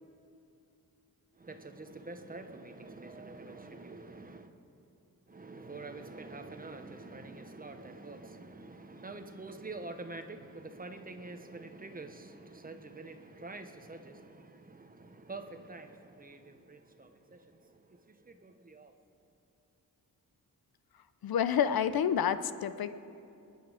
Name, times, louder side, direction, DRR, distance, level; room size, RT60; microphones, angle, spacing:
voice 1, 1.3-4.5 5.3-18.9, right 3 dB, 25° right, 0.9 m, -46 dB
voice 2, 21.2-22.9, left 8 dB, 80° left, 0.7 m, -28 dB
26.5 x 10.0 x 5.0 m
wide cardioid pair, 150°, 35 cm